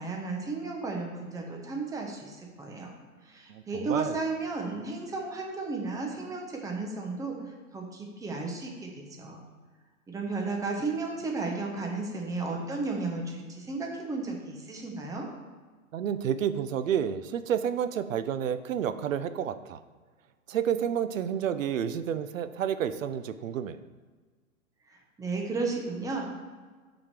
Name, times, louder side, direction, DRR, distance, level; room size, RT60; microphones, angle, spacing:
voice 1, 0.0-2.9 3.2-7.4 7.7-9.4 10.1-15.3 24.9-26.4, right 3 dB, 10° right, 1 dB, 1.0 m, -34 dB
voice 2, 3.5-4.1 15.9-19.8 20.5-23.8, right 9 dB, 70° right, 12 dB, 0.6 m, -30 dB
5.9 x 5.2 x 6.6 m, 1.4 s
hypercardioid pair, 130°, 41 cm